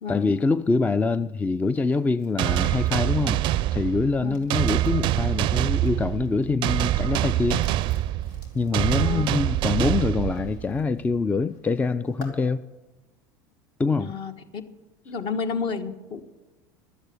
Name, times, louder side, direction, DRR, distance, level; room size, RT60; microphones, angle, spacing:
voice 1, 0.1-3.4 3.7-7.7 8.5-12.6 13.8-14.1, left 4 dB, 15° left, 0.4 m, -25 dB
sound 1, 1.6-6.0 6.2-12.4, left 3 dB, 75° left, 3.0 m, -51 dB
sound 2, 2.4-10.8, right 14 dB, 50° right, 0.4 m, -25 dB
voice 2, 14.0-14.6 15.0-16.2, left 5 dB, 50° left, 1.6 m, -31 dB
12.5 x 8.0 x 9.5 m
hypercardioid pair, 95°, 10 cm